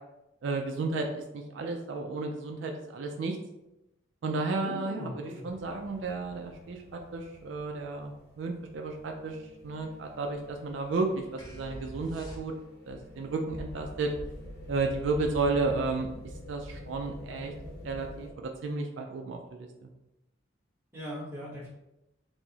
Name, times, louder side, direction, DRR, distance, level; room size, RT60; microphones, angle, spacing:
voice 1, 0.4-3.4 4.2-12.5 12.9-14.1 14.7-16.1 16.5-17.5 17.8-19.9, right 3 dB, 70° right, 3 dB, 0.3 m, -33 dB
voice 2, 4.6-5.4 20.9-21.7, equal, 10° right, -7 dB, 1.0 m, -40 dB
sound 1, 5.5-18.3, left 1 dB, 50° left, 0.7 m, -47 dB
sound 2, 11.4-12.9, equal, 20° left, 0.5 m, -44 dB
4.5 x 2.0 x 2.7 m, 0.92 s
head